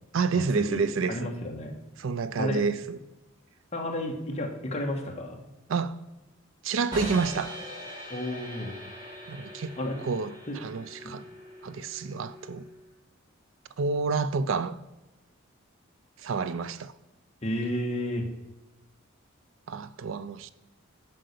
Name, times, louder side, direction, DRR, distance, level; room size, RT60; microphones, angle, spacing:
voice 1, 0.1-1.3 2.0-3.0 5.7-6.1 6.6-7.6 9.3-9.7 10.0-11.2 11.6-12.7 13.8-14.8 16.2-16.9 19.7-20.5, right 4 dB, 70° right, 0.4 m, -29 dB
voice 2, 0.7-1.8 2.4-2.6 3.7-5.4 8.1-8.7 9.8-10.0 10.5-10.6 17.4-18.2, left 1 dB, 30° left, 1.4 m, -32 dB
sound 1, 6.9-12.9, equal, 20° right, 3.0 m, -42 dB
7.6 x 5.6 x 6.6 m
head